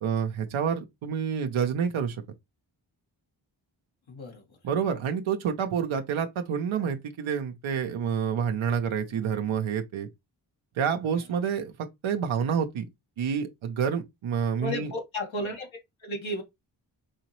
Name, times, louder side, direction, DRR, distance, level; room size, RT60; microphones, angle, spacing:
voice 1, 0.0-2.2 4.6-10.1 10.8-11.7 12.0-12.8 13.2-14.9, right 7 dB, 90° right, 0.7 m, -28 dB
voice 2, 4.1-4.6 11.2-11.3 14.6-15.7 16.0-16.4, left 1 dB, 75° left, 1.5 m, -33 dB
4.7 x 2.9 x 3.0 m
cardioid pair, 40°, 46 cm